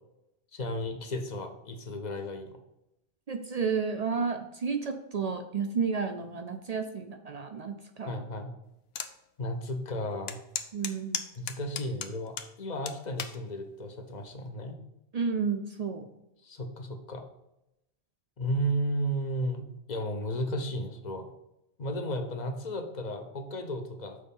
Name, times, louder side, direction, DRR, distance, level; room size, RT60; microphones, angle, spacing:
voice 1, 0.5-2.5 8.1-8.5 9.4-10.4 11.4-14.8 16.4-17.2 18.4-21.3 21.8-24.2, equal, 45° left, 6 dB, 0.9 m, -34 dB
voice 2, 3.3-8.2 10.7-11.2 15.1-16.1, right 5 dB, 55° right, 6 dB, 0.4 m, -31 dB
sound 1, 8.9-9.1 9.6-9.7 10.3-12.5 12.9-13.4 14.1-14.4, left 8 dB, 75° left, 0.8 m, -35 dB
6.5 x 4.4 x 5.4 m, 0.87 s
omnidirectional pair, 1.1 m